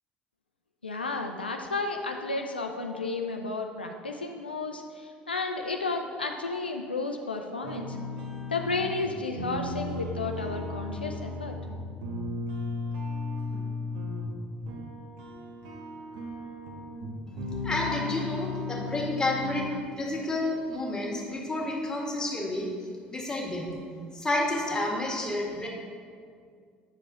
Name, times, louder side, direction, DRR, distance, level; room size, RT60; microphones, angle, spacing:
voice 1, 0.8-8.0 8.5-11.5, left 3 dB, 85° left, 3 dB, 0.4 m, -32 dB
sound 1, 7.6-19.6, left 2 dB, 65° right, 1.2 m, -35 dB
voice 2, 17.6-19.7 20.0-22.7 23.1-23.7 24.1-25.7, left 2 dB, 15° left, -2 dB, 1.8 m, -30 dB
8.3 x 6.6 x 3.8 m, 2.1 s
figure-of-eight pair, 60°, 5 cm